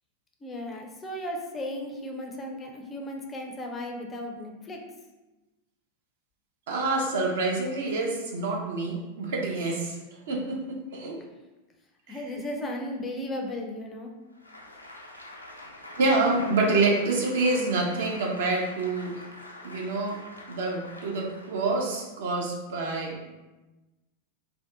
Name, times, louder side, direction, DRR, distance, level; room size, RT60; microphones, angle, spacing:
voice 1, 0.4-4.8 12.1-14.1, left 1 dB, 20° left, 1 dB, 0.4 m, -35 dB
voice 2, 6.7-11.2 12.1-12.2 16.0-19.1 19.6-20.2 20.5-23.3, right 3 dB, 60° right, 0 dB, 0.6 m, -27 dB
Applause, 14.3-22.1, left 1 dB, 85° left, 0.3 m, -45 dB
2.6 x 2.3 x 3.4 m, 1.1 s
figure-of-eight pair, 90°, 0 cm